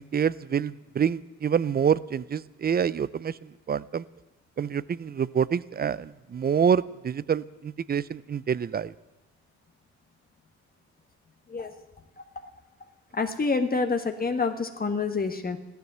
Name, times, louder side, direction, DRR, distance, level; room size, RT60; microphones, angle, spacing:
voice 1, 0.1-3.3 3.7-4.0 4.6-8.9, right 7 dB, 30° right, 20 dB, 0.5 m, -26 dB
voice 2, 13.2-15.6, left 4 dB, 30° left, 6 dB, 1.3 m, -27 dB
15.0 x 13.0 x 7.4 m, 1.0 s
cardioid pair, 90°, 30 cm